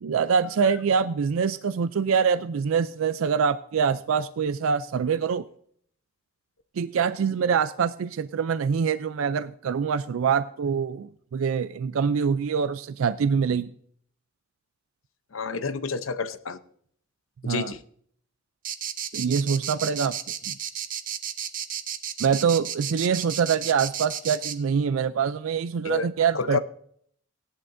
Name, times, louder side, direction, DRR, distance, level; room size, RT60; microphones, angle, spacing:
voice 1, 0.0-5.4 6.8-13.7 17.4-17.7 19.1-20.2 20.5-20.6 22.2-26.6, right 6 dB, 85° right, 14 dB, 0.4 m, -25 dB
voice 2, 15.3-16.6 17.4-17.8 25.8-26.1 26.3-26.6, left 4 dB, 80° left, 12 dB, 0.7 m, -29 dB
sound 1, 18.6-24.5, right 9 dB, 40° right, 0.7 m, -32 dB
17.0 x 11.0 x 2.6 m, 0.63 s
head